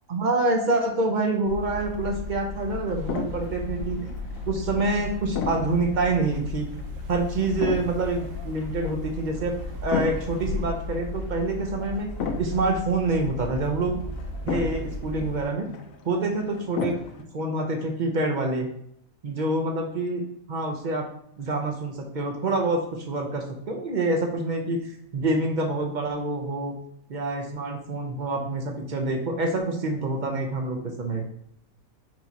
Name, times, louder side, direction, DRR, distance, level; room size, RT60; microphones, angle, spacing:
voice 1, 0.1-4.1 4.5-6.7 7.1-12.1 12.4-14.0 14.5-15.7 16.0-17.0 17.3-18.7 19.2-20.2 20.5-21.1 21.4-24.8 25.1-26.7 27.1-31.2, right 2 dB, 50° right, 2 dB, 0.6 m, -26 dB
sound 1, 1.5-15.5, left 2 dB, 70° right, 0.9 m, -35 dB
sound 2, 1.7-17.2, left 5 dB, 75° left, 1.0 m, -36 dB
4.5 x 2.9 x 4.0 m, 0.73 s
omnidirectional pair, 1.5 m